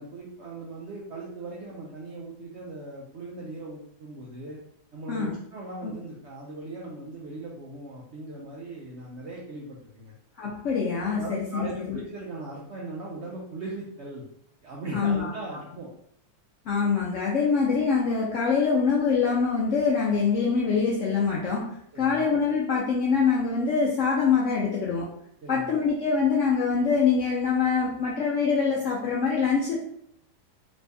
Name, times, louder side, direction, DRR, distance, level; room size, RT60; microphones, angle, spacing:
voice 1, 0.0-4.6 4.9-10.1 11.1-14.3 14.6-15.9 21.9-22.3 25.4-25.8, right 2 dB, 70° right, -3 dB, 0.6 m, -39 dB
voice 2, 10.4-12.0 14.9-15.6 16.7-25.1 25.5-29.8, left 5 dB, 70° left, -3 dB, 0.7 m, -24 dB
3.1 x 2.6 x 3.3 m, 0.73 s
omnidirectional pair, 1.8 m